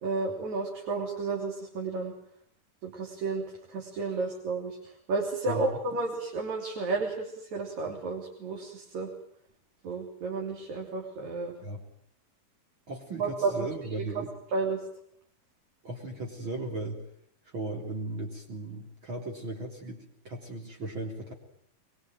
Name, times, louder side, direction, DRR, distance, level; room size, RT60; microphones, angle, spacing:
voice 1, 0.0-2.1 2.8-9.1 9.8-11.5 13.2-13.5 14.5-14.8, right 3 dB, 60° right, 0 dB, 4.6 m, -32 dB
voice 2, 12.9-14.3 15.8-17.0 17.5-21.3, right 2 dB, 40° right, 0 dB, 4.0 m, -37 dB
23.5 x 22.5 x 9.2 m, 0.68 s
omnidirectional pair, 3.7 m